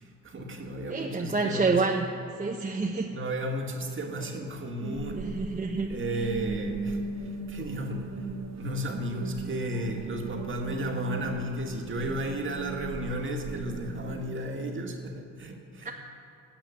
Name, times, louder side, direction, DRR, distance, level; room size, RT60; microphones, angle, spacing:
voice 1, 0.0-1.8 3.1-5.3 5.9-8.1 8.5-15.9, equal, 40° right, 2 dB, 2.1 m, -34 dB
voice 2, 0.9-2.1 2.4-3.1 5.1-5.9 15.8-15.9, right 4 dB, 25° right, 1 dB, 1.0 m, -28 dB
sound 1, 4.8-14.3, right 4 dB, 60° right, 1.4 m, -38 dB
13.5 x 8.3 x 8.7 m, 2.6 s
cardioid pair, 90°, 30 cm